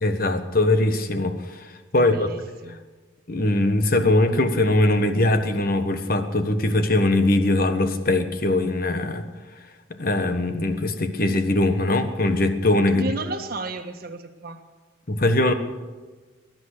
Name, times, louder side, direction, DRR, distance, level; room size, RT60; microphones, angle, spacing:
voice 1, 0.0-1.7 1.9-2.3 3.3-9.3 10.0-13.0 15.1-15.5, left 2 dB, 45° left, 8 dB, 1.3 m, -21 dB
voice 2, 1.9-2.8 12.9-14.6, right 2 dB, 50° right, 5 dB, 1.5 m, -33 dB
20.5 x 10.5 x 6.7 m, 1.3 s
head